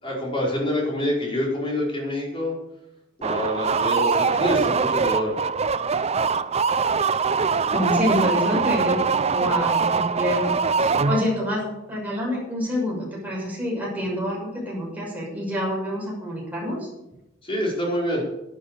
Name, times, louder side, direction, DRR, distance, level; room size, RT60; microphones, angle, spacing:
voice 1, 0.0-2.5 3.2-5.3 17.4-18.2, equal, 30° left, -3 dB, 4.7 m, -26 dB
sound 1, 3.2-11.5, right 5 dB, 35° right, 0.5 m, -23 dB
voice 2, 7.7-9.0 9.3-16.9, left 1 dB, 10° right, -4 dB, 6.4 m, -27 dB
12.0 x 10.5 x 6.8 m, 0.90 s
head